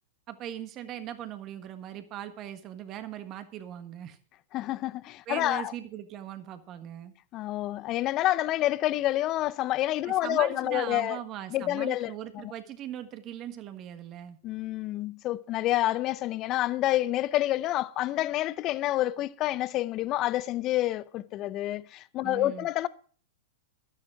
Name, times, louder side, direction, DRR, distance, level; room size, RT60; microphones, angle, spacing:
voice 1, 0.3-4.2 5.3-7.1 10.0-14.4 22.2-22.7, right 11 dB, 35° right, 1.4 m, -39 dB
voice 2, 4.5-5.7 7.3-11.2 11.5-12.1 14.4-22.9, left 15 dB, 35° left, 0.6 m, -28 dB
12.5 x 10.5 x 4.9 m
hypercardioid pair, 105°, 0 cm